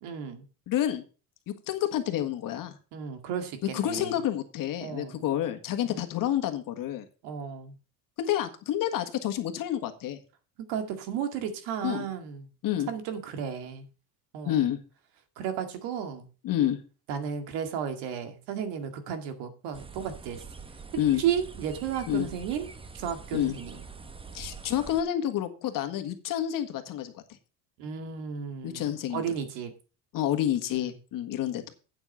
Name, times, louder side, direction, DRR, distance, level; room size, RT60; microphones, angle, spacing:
voice 1, 0.0-0.4 2.9-4.2 4.8-5.2 5.8-6.1 7.2-7.7 10.7-12.5 12.9-13.9 14.3-14.6 15.4-16.3 17.1-20.4 21.2-23.8 27.8-29.7 30.8-30.9, right 8 dB, 75° right, 8 dB, 2.2 m, -33 dB
voice 2, 0.7-1.0 1.5-2.8 3.7-7.1 8.2-10.2 11.8-12.1 12.6-12.9 14.5-14.8 16.4-16.8 21.0-21.2 22.1-22.3 23.3-23.5 24.3-27.2 28.6-29.2 30.1-31.7, left 11 dB, 50° left, 8 dB, 1.7 m, -29 dB
sound 1, 19.7-25.0, right 4 dB, 15° right, 0.9 m, -45 dB
8.9 x 7.5 x 5.6 m, 0.35 s
supercardioid pair, 115°, 41 cm